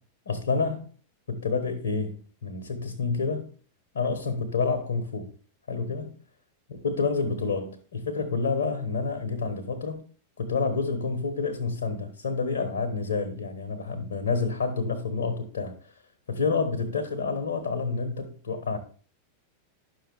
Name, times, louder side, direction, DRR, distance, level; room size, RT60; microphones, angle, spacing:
voice 1, 0.3-0.8 1.3-3.5 3.9-5.3 5.7-6.1 6.8-10.0 10.4-15.7 16.3-18.8, left 4 dB, 70° left, 1.4 m, -28 dB
11.0 x 6.5 x 3.4 m
figure-of-eight pair, 90°, 0 cm